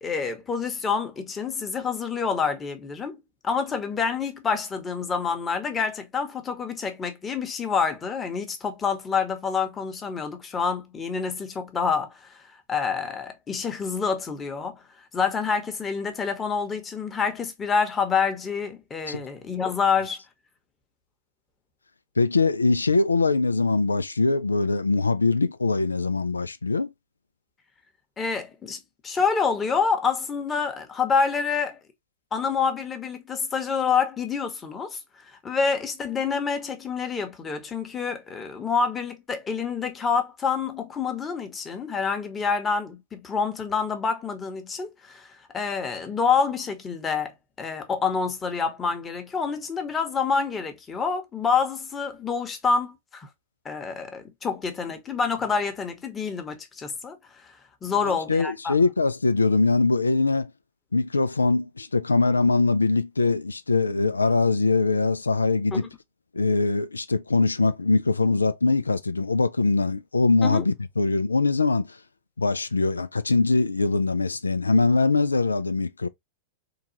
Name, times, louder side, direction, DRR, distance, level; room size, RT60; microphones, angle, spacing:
voice 1, 0.0-12.4 12.7-20.2 28.2-31.8 32.3-53.3 53.6-58.7 65.7-65.9 70.4-70.7, left 5 dB, 20° left, 0.9 m, -27 dB
voice 2, 22.2-26.9 58.0-60.5 60.9-65.9 66.3-72.0 72.4-76.1, left 3 dB, 85° left, 0.3 m, -22 dB
3.8 x 2.3 x 2.8 m
figure-of-eight pair, 100°, 0 cm